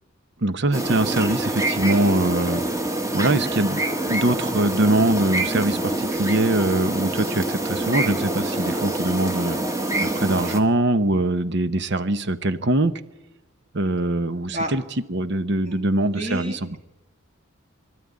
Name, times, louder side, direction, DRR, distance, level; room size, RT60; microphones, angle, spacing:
voice 1, 0.4-2.7 3.1-9.6 10.0-12.9 13.7-14.8 15.1-16.6, right 2 dB, 55° right, 12 dB, 1.0 m, -22 dB
sound 1, 0.7-10.6, right 1 dB, 15° right, 1.6 m, -26 dB
voice 2, 15.7-16.8, right 1 dB, 35° right, 2 dB, 2.1 m, -31 dB
24.0 x 13.0 x 9.6 m, 1.0 s
head